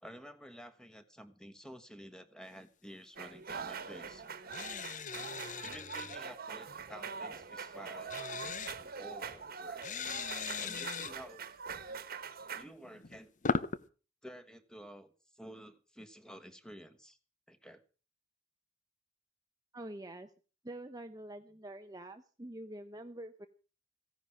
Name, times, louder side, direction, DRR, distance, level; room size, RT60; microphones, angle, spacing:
voice 1, 0.0-4.2 5.6-8.1 9.0-10.0 10.5-11.4 12.5-13.3 14.2-17.2 17.5-17.8, equal, 5° left, 9 dB, 1.4 m, -51 dB
sound 1, 3.2-12.6, right 6 dB, 50° right, 1.5 m, -43 dB
sound 2, 4.5-6.2 8.1-8.8 9.8-11.1 12.8-13.8, left 5 dB, 40° left, 0.7 m, -38 dB
voice 2, 19.7-20.3 20.6-23.5, right 1 dB, 20° right, 7 dB, 0.8 m, -46 dB
16.0 x 10.5 x 6.3 m, 0.37 s
head